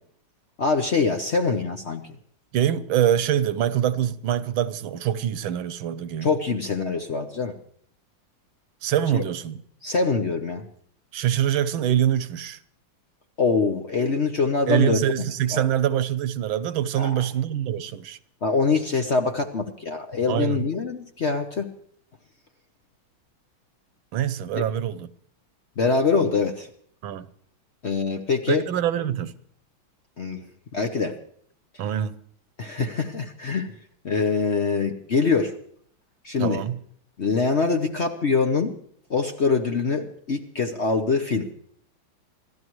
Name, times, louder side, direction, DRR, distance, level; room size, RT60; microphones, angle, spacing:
voice 1, 0.6-2.1 6.2-7.5 9.1-9.2 9.8-10.6 13.4-15.7 16.9-17.2 18.4-21.7 24.5-24.7 25.8-26.7 27.8-28.6 30.2-30.4 30.7-31.2 32.6-33.7 34.0-35.5 36.2-36.6 37.2-38.7 39.1-41.5, left 4 dB, 45° left, 0.9 m, -24 dB
voice 2, 2.5-6.3 8.8-9.6 11.1-12.6 14.7-18.2 20.3-20.6 24.1-25.1 27.0-27.3 28.5-29.3 31.8-32.1 36.4-36.8, right 10 dB, 80° right, 1.6 m, -24 dB
27.5 x 14.0 x 3.1 m
omnidirectional pair, 2.2 m